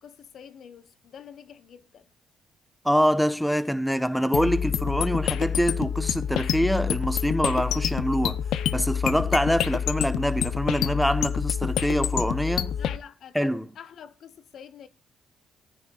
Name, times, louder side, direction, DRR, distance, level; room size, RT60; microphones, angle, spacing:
voice 1, 0.0-2.1 12.8-14.9, left 8 dB, 65° left, 1.3 m, -46 dB
voice 2, 2.8-8.4 8.7-12.7 13.3-13.7, equal, ahead, 1.2 m, -25 dB
sound 1, 4.3-13.0, left 9 dB, 80° left, 0.8 m, -27 dB
19.0 x 9.7 x 2.5 m
cardioid pair, 90°, 0 cm